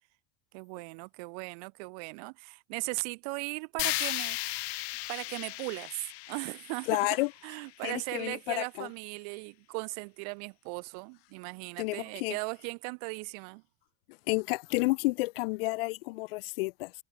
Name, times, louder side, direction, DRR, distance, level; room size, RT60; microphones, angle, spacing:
voice 1, 0.5-4.7 5.1-7.2 7.4-13.6, right 34 dB, 40° right, 0.4 m, -38 dB
sound 1, 3.8-7.9, left 20 dB, 90° left, 1.1 m, -36 dB
voice 2, 6.9-7.3 7.8-8.9 11.8-12.4 14.1-16.9, left 23 dB, 70° left, 0.5 m, -31 dB
supercardioid pair, 180°, 31 cm